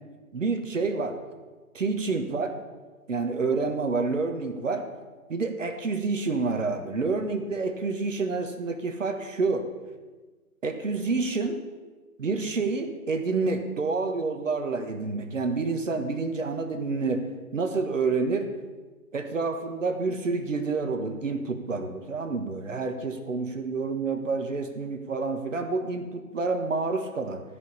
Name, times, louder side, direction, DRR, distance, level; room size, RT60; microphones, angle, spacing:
voice 1, 0.3-1.2 1.7-2.5 3.1-4.9 5.3-9.7 10.6-11.6 12.2-17.3 17.5-18.5 19.1-27.4, right 4 dB, 55° right, 7 dB, 1.5 m, -28 dB
14.0 x 5.5 x 8.5 m, 1.3 s
figure-of-eight pair, 140°, 45 cm